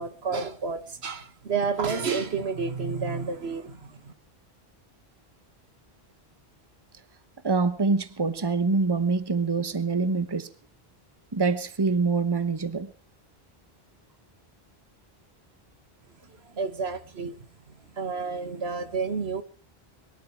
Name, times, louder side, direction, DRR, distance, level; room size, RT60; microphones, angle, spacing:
voice 1, 0.0-4.1 16.2-19.4, right 5 dB, 75° right, 10 dB, 1.6 m, -31 dB
voice 2, 7.4-10.5 11.3-12.9, right 4 dB, 25° right, 13 dB, 1.1 m, -25 dB
23.0 x 12.5 x 4.6 m, 0.39 s
omnidirectional pair, 1.1 m